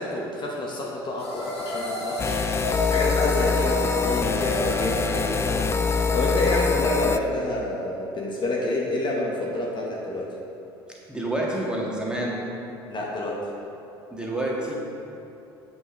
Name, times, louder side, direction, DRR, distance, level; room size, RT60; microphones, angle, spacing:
voice 1, 0.0-10.3 12.9-13.4, left 2 dB, 35° left, -3 dB, 1.2 m, -28 dB
sound 1, 1.2-6.6, left 3 dB, 85° left, 1.1 m, -31 dB
sound 2, 2.2-7.2, left 4 dB, 20° left, 0.4 m, -25 dB
voice 2, 11.1-12.5 14.1-14.8, right 1 dB, 5° right, -4 dB, 1.8 m, -28 dB
8.0 x 5.5 x 5.2 m, 2.8 s
figure-of-eight pair, 60°, 13 cm